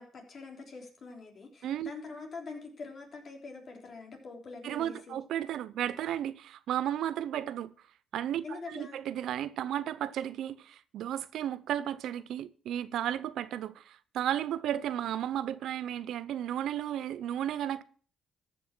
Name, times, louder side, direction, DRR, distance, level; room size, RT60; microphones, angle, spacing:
voice 1, 0.0-5.2 8.4-9.0, left 4 dB, 50° left, 3.5 m, -44 dB
voice 2, 4.6-7.7 8.1-17.8, right 11 dB, 80° right, 0.6 m, -34 dB
14.0 x 6.1 x 6.1 m
cardioid pair, 90°, 0 cm